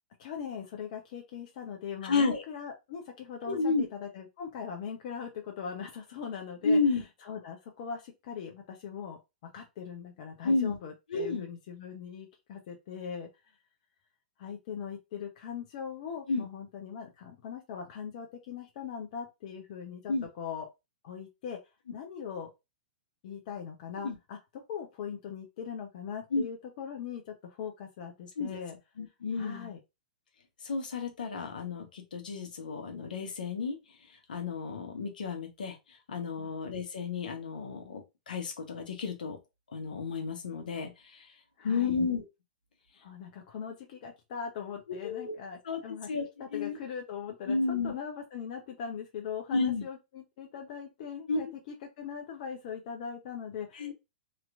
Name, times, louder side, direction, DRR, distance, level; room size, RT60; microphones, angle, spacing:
voice 1, 0.2-13.3 14.4-20.7 21.0-21.6 21.9-22.5 23.2-24.4 24.7-28.7 29.4-29.8 36.4-36.5 41.6-42.0 43.0-46.1 46.4-47.6 47.8-53.9, left 7 dB, 55° left, 2 dB, 0.8 m, -40 dB
voice 2, 2.0-2.4 3.5-3.8 6.6-7.0 10.4-10.8 11.1-11.5 16.3-16.4 20.1-20.3 24.0-24.1 26.3-26.5 28.4-28.6 29.0-29.7 30.6-33.8 34.3-39.4 39.7-41.3 41.6-42.2 45.0-45.4 45.6-45.8 46.1-46.2 46.5-46.8 47.5-47.9 49.5-49.8 51.3-51.4 53.7-53.9, left 4 dB, 75° left, 4 dB, 1.1 m, -31 dB
3.1 x 3.0 x 2.5 m, 0.23 s
hypercardioid pair, 110°, 5 cm